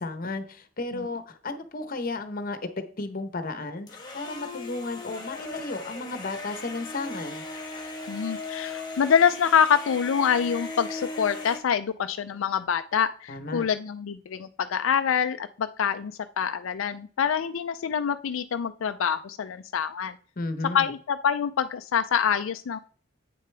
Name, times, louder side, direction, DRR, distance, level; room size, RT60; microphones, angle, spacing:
voice 1, 0.0-7.4 13.3-13.7 20.4-20.9, left 3 dB, 45° left, 10 dB, 0.9 m, -34 dB
sound 1, 3.9-11.6, left 3 dB, 20° left, 1.5 m, -38 dB
voice 2, 8.1-20.1 20.7-22.8, left 7 dB, 85° left, 9 dB, 0.4 m, -25 dB
8.5 x 6.6 x 3.3 m, 0.43 s
head